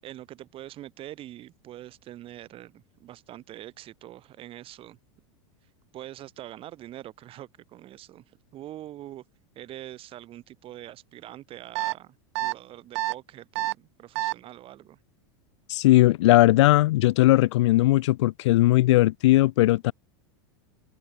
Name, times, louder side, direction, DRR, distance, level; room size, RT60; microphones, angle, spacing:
voice 1, 0.0-5.0 5.9-8.2 8.5-9.2 9.5-15.0, right 13 dB, 40° right, 5.1 m, -44 dB
sound 1, 11.7-11.9 12.3-12.5 12.9-13.1 13.5-13.7 14.1-14.3, right 18 dB, 70° right, 0.8 m, -27 dB
voice 2, 15.7-19.9, left 17 dB, 80° left, 0.4 m, -19 dB
supercardioid pair, 125°, 15 cm